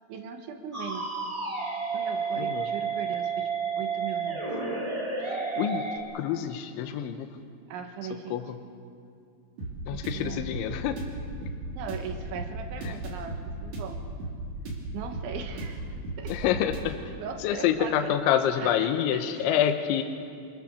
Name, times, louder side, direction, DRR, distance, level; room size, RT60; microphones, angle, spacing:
voice 1, 0.1-1.1 1.9-3.5 3.8-4.5 7.7-8.4 9.9-10.5 11.7-14.0 14.9-16.5 17.2-18.2 18.6-19.6, right 6 dB, 75° right, 5 dB, 3.6 m, -39 dB
sound 1, 0.7-6.0, right 5 dB, 25° right, 0.7 m, -31 dB
voice 2, 6.1-7.3 8.3-8.4 9.9-11.0 16.3-17.0 17.4-20.0, left 10 dB, 75° left, 6 dB, 3.2 m, -27 dB
sound 2, 9.6-16.8, right 2 dB, 40° right, 4.1 m, -36 dB
27.5 x 19.0 x 6.9 m, 2.4 s
omnidirectional pair, 5.7 m